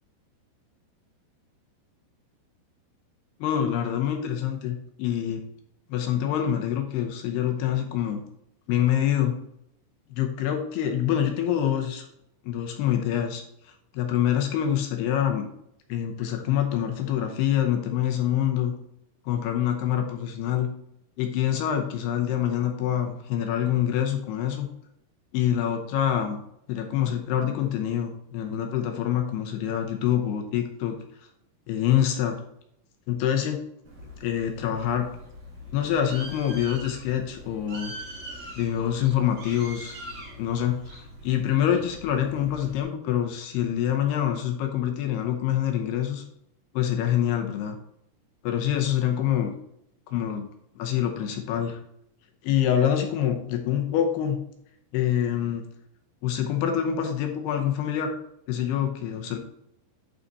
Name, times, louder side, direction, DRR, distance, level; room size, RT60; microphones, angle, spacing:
voice 1, 3.4-5.4 5.9-8.2 8.7-9.3 10.2-12.1 12.5-13.4 13.9-15.5 15.9-18.7 19.3-20.7 21.2-24.7 25.3-26.4 26.7-31.0 31.7-32.4 33.1-33.6 34.2-35.1 35.7-37.9 38.6-40.0 40.4-46.2 46.7-47.8 48.4-49.5 50.1-50.5 50.8-51.8 52.4-54.4 54.9-55.7 56.2-58.1 58.5-59.4, left 10 dB, 75° left, 4 dB, 2.7 m, -26 dB
Bird, 33.8-42.8, equal, 55° right, 2.1 m, -42 dB
11.0 x 4.1 x 4.1 m, 0.75 s
omnidirectional pair, 5.0 m